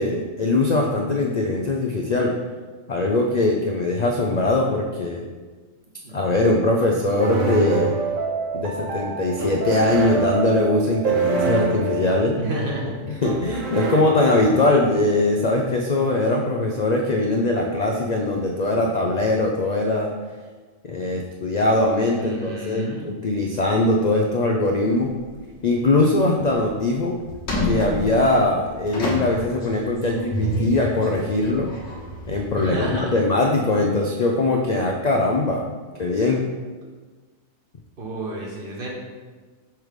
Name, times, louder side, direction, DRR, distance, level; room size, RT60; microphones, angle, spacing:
voice 1, 0.0-2.4 2.9-5.3 6.1-8.0 8.5-12.4 13.1-20.1 20.8-25.1 25.6-27.2 27.7-31.7 32.3-35.6 36.0-36.5, left 2 dB, 90° left, 1 dB, 0.3 m, -21 dB
sound 1, 7.2-14.9, right 3 dB, 70° right, 1.1 m, -26 dB
voice 2, 12.3-13.0 22.2-23.0 32.6-33.1 38.0-38.9, right 1 dB, 45° right, -2 dB, 1.2 m, -30 dB
sound 2, 25.0-25.5 25.9-26.0 26.5-26.8 27.3-33.0, equal, 65° left, 1.5 m, -29 dB
5.9 x 3.2 x 5.0 m, 1.4 s
omnidirectional pair, 1.4 m